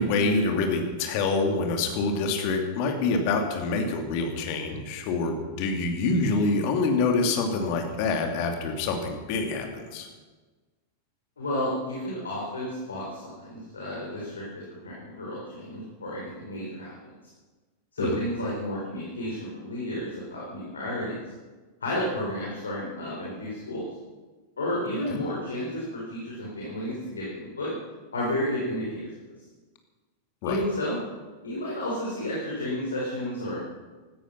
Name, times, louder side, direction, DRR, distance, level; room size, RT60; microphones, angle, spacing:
voice 1, 0.0-10.1 18.0-18.2 25.0-25.2 30.4-30.6, left 3 dB, 45° left, 4 dB, 2.7 m, -26 dB
voice 2, 11.4-17.1 17.9-21.2 21.8-23.8 24.6-27.7 28.1-29.2 30.4-31.0 31.4-33.6, left 1 dB, 70° left, -4 dB, 4.4 m, -32 dB
17.0 x 13.0 x 5.9 m, 1.3 s
figure-of-eight pair, 90°, 0 cm